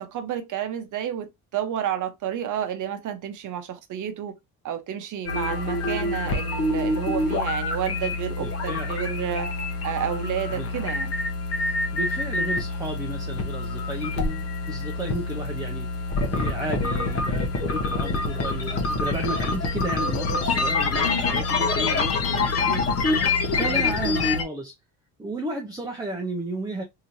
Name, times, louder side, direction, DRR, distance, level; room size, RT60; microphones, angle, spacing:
voice 1, 0.0-4.4 4.6-9.5 9.8-11.1 23.5-23.8, right 10 dB, 55° right, 0.7 m, -30 dB
sound 1, 5.3-24.4, left 3 dB, 40° left, 0.8 m, -26 dB
voice 2, 8.4-9.0 10.5-10.7 11.9-22.9 23.5-24.7 25.2-26.8, right 1 dB, 10° right, 0.6 m, -33 dB
3.0 x 2.8 x 2.5 m
cardioid pair, 100°, 37 cm